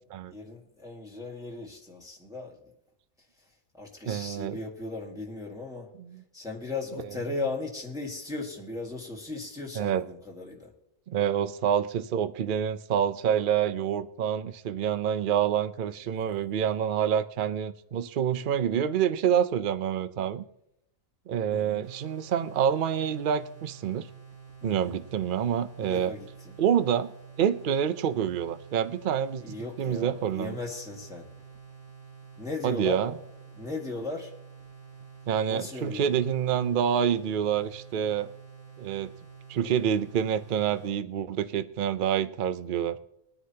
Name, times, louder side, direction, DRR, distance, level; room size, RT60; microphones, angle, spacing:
voice 1, 0.3-2.6 3.8-5.9 6.3-10.7 21.5-21.8 24.6-24.9 25.8-26.6 29.4-31.3 32.4-33.2 33.6-34.3 35.5-36.2, left 3 dB, 5° right, -2 dB, 1.9 m, -37 dB
voice 2, 4.1-4.6 6.0-6.2 9.8-10.0 11.1-20.4 21.3-24.1 24.6-26.1 26.6-27.1 27.4-30.5 32.6-33.1 35.3-38.3 38.8-39.1 39.5-43.0, right 9 dB, 50° right, 13 dB, 0.6 m, -27 dB
sound 1, 21.8-40.9, right 6 dB, 90° right, 4.2 m, -49 dB
22.0 x 9.7 x 2.9 m, 0.80 s
omnidirectional pair, 1.4 m